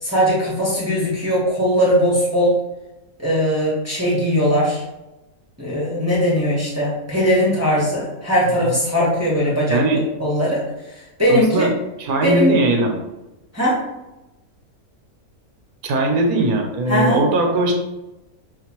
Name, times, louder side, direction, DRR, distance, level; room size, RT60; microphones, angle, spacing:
voice 1, 0.0-2.6 3.2-4.8 5.6-9.8 10.2-10.6 10.9-11.7 12.2-12.5 13.5-13.8 16.9-17.2, equal, 10° right, -6 dB, 0.8 m, -19 dB
voice 2, 11.3-11.7 12.0-12.9 15.8-17.7, right 2 dB, 75° right, 2 dB, 1.2 m, -19 dB
5.8 x 2.5 x 2.9 m, 0.97 s
omnidirectional pair, 1.6 m